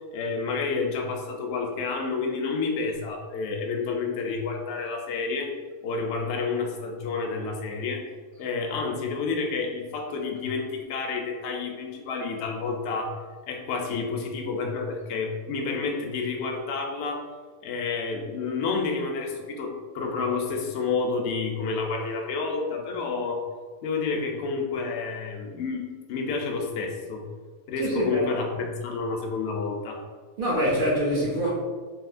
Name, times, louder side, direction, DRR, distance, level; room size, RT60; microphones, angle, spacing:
voice 1, 0.1-5.6 5.8-8.0 8.4-13.2 13.5-17.2 17.6-23.4 23.8-27.2 27.7-30.0, left 4 dB, 65° left, 1 dB, 0.7 m, -29 dB
voice 2, 27.8-28.2 30.4-31.5, equal, 55° right, -5 dB, 0.5 m, -24 dB
3.5 x 2.6 x 2.4 m, 1.5 s
omnidirectional pair, 1.5 m